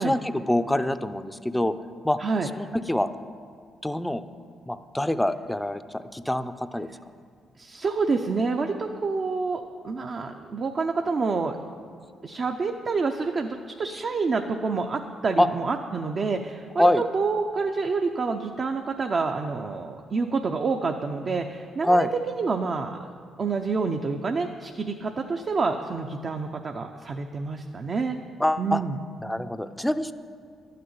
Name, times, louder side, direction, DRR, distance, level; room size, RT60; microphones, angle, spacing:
voice 1, 0.0-1.7 2.0-2.2 2.5-3.1 3.8-4.2 4.7-6.9 15.4-15.5 16.8-17.0 21.8-22.1 28.4-28.8 29.2-30.1, left 1 dB, 5° left, 11 dB, 0.5 m, -25 dB
voice 2, 7.6-11.6 12.2-23.0 23.4-28.2 28.6-29.0, right 4 dB, 45° right, 4 dB, 0.7 m, -28 dB
12.0 x 6.7 x 9.5 m, 2.2 s
cardioid pair, 90°, 0 cm